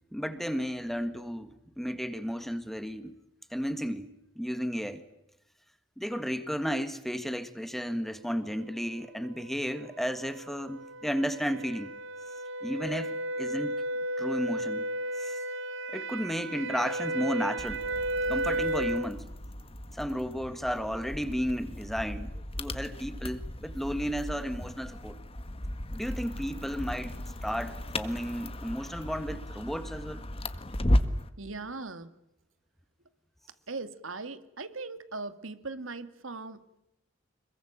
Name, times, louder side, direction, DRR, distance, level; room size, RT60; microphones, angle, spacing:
voice 1, 0.1-3.1 3.5-5.0 6.0-11.9 12.6-13.8 14.2-14.9 15.2-15.4 15.9-17.8 18.3-19.3 19.9-25.2 25.9-27.2 27.4-30.2, equal, ahead, 1.8 m, -33 dB
sound 1, 9.2-19.1, right 1 dB, 65° right, 1.0 m, -34 dB
sound 2, 17.6-31.3, left 1 dB, 30° left, 1.7 m, -35 dB
voice 2, 31.4-32.1 33.7-36.8, right 3 dB, 85° right, 2.3 m, -39 dB
26.5 x 22.5 x 9.0 m
head